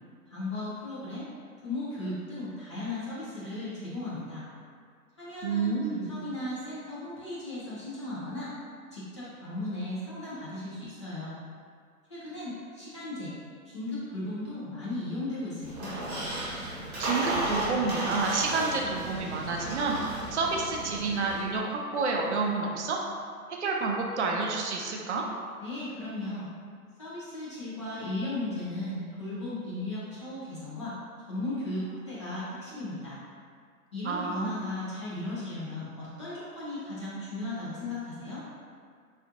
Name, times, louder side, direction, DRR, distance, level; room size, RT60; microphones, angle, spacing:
voice 1, 0.3-1.3 1.6-4.4 5.2-5.8 6.1-8.5 8.9-11.4 12.1-13.3 13.6-16.0 25.6-26.5 27.0-30.9 31.3-33.2 33.9-38.4, left 2 dB, 20° left, -10 dB, 0.4 m, -36 dB
voice 2, 5.4-6.2 17.0-23.0 23.5-25.2 34.0-34.5, right 4 dB, 50° right, 0 dB, 0.5 m, -29 dB
Squeak, 15.6-21.4, right 1 dB, 20° right, 0.9 m, -34 dB
4.1 x 2.4 x 2.5 m, 2.1 s
figure-of-eight pair, 120°, 44 cm